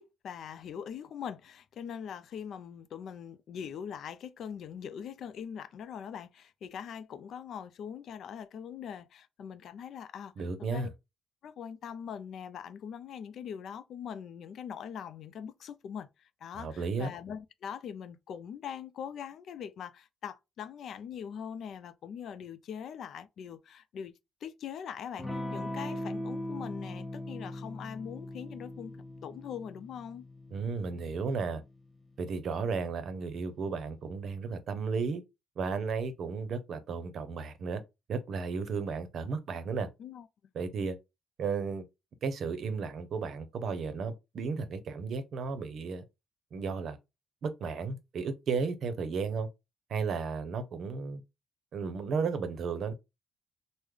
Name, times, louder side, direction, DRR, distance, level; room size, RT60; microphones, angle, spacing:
voice 1, 0.0-10.9 11.4-24.1 24.4-28.9 29.2-30.3 40.0-40.3, left 8 dB, 70° left, 0.4 m, -42 dB
voice 2, 10.4-10.9 16.5-17.1 30.5-31.6 32.2-35.2 35.6-37.8 38.1-39.9 40.5-41.0 41.4-41.8 42.2-46.0 46.5-47.0 47.4-49.5 49.9-51.2 51.7-52.9, right 5 dB, 60° right, 0.6 m, -34 dB
Electric guitar / Strum, 25.2-33.5, left 1 dB, 10° left, 0.9 m, -41 dB
3.2 x 2.1 x 3.6 m
cardioid pair, 90°, 0 cm